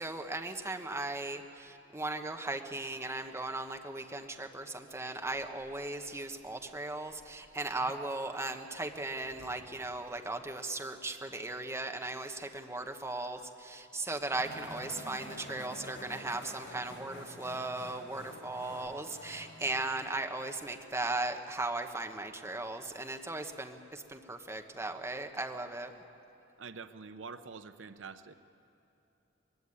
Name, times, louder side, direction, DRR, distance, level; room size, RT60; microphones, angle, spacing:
voice 1, 0.0-25.9, right 2 dB, 15° right, 5 dB, 1.1 m, -37 dB
Bark, 4.5-12.1 12.4-12.5, right 1 dB, 50° right, 4.9 m, -63 dB
sound 1, 14.3-20.1, left 1 dB, 65° left, 6.3 m, -48 dB
voice 2, 26.6-28.3, right 5 dB, 85° right, 11 dB, 0.7 m, -46 dB
21.0 x 16.5 x 9.7 m, 3.0 s
head